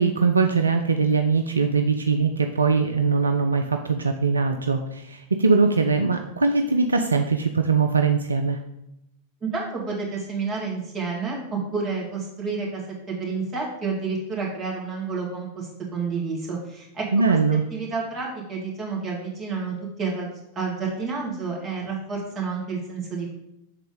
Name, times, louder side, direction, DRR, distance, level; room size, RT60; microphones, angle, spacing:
voice 1, 0.0-8.6 17.1-17.6, right 4 dB, 75° right, 5 dB, 0.3 m, -21 dB
voice 2, 9.4-12.8 13.1-17.4 17.7-23.3, right 4 dB, 30° right, -4 dB, 2.1 m, -30 dB
6.6 x 3.8 x 3.8 m, 0.82 s
figure-of-eight pair, 90°, 0 cm